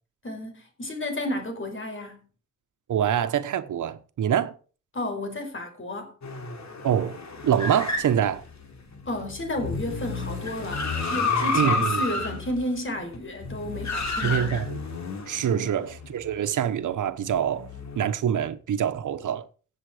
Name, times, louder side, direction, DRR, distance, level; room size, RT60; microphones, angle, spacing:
voice 1, 0.2-2.2 4.9-6.1 9.1-14.5 15.5-15.7, left 1 dB, 40° left, 4.7 m, -32 dB
voice 2, 2.9-4.5 6.8-7.2 7.4-8.4 11.5-12.0 14.2-14.7 15.3-17.7 18.0-19.5, right 9 dB, 90° right, 1.2 m, -25 dB
sound 1, 6.2-16.1 17.2-18.0, left 3 dB, 65° left, 3.3 m, -31 dB
17.0 x 7.5 x 5.0 m
cardioid pair, 100°, 30 cm